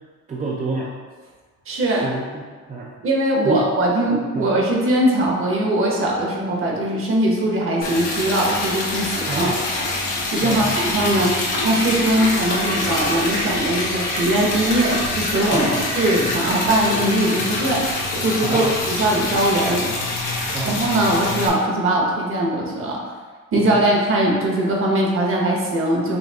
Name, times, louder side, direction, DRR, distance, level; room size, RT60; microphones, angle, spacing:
voice 1, 0.3-0.9 2.0-2.4 2.7-2.9 3.4-3.6 4.3-4.5 9.3-9.6 10.4-10.7 15.5-15.8 18.4-18.8 20.5-20.8 23.6-23.9, right 2 dB, 25° right, -4 dB, 0.5 m, -27 dB
voice 2, 1.7-2.1 3.0-9.5 10.3-11.3 11.6-17.8 18.2-19.9 20.6-23.0 23.5-26.2, right 1 dB, 45° right, -2 dB, 1.1 m, -20 dB
Liquid, 7.8-21.5, left 2 dB, 90° left, 1.1 m, -25 dB
5.4 x 2.6 x 3.5 m, 1.5 s
cardioid pair, 125°, 31 cm